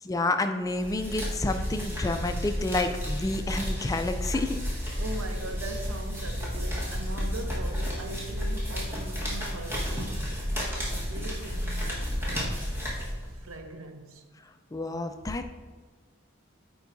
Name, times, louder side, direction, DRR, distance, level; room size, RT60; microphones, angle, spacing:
voice 1, 0.0-4.6 14.7-15.5, left 2 dB, 15° left, 0.3 m, -29 dB
sound 1, 0.7-13.5, equal, 10° right, 1.4 m, -32 dB
voice 2, 5.0-12.7 13.3-14.3, right 2 dB, 90° right, 0.7 m, -41 dB
9.4 x 4.6 x 2.6 m
head